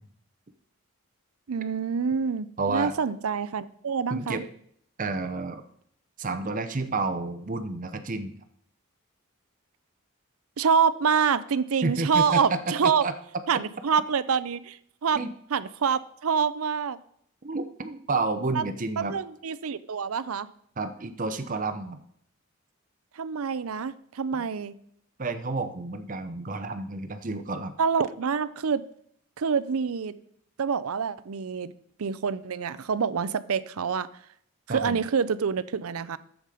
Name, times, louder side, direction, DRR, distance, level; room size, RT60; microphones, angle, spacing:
voice 1, 1.5-4.4 10.6-13.0 13.5-15.2 15.5-17.0 18.5-18.6 19.0-20.5 23.1-24.7 27.8-28.8 29.4-30.1 30.6-31.7 32.0-34.1 34.7-36.2, right 6 dB, 80° right, 16 dB, 0.5 m, -26 dB
voice 2, 2.6-2.9 4.1-4.5 5.0-5.6 6.2-8.3 11.8-12.6 12.8-13.1 15.2-15.3 17.4-19.1 20.8-22.0 25.2-27.7 34.7-35.0, right 3 dB, 35° right, 9 dB, 0.7 m, -30 dB
10.5 x 7.3 x 4.9 m, 0.67 s
head